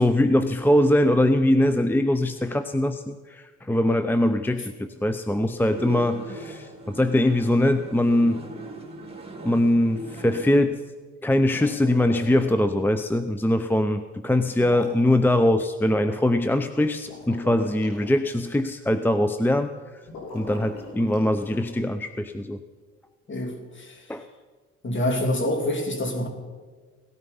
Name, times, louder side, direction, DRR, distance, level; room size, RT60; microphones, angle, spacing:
voice 1, 0.0-8.4 9.4-10.8 11.2-20.0 20.3-22.6 24.1-24.2, left 1 dB, 5° left, 10 dB, 0.6 m, -22 dB
sound 1, 5.6-10.6, right 2 dB, 20° right, 3.1 m, -39 dB
sound 2, 11.5-12.6 14.5-15.1 16.9-18.1 20.0-21.7, left 3 dB, 80° left, 6.3 m, -41 dB
voice 2, 23.3-24.1 24.8-26.3, left 1 dB, 40° left, 4 dB, 2.8 m, -26 dB
18.0 x 13.0 x 5.6 m, 1.4 s
cardioid pair, 90°, 30 cm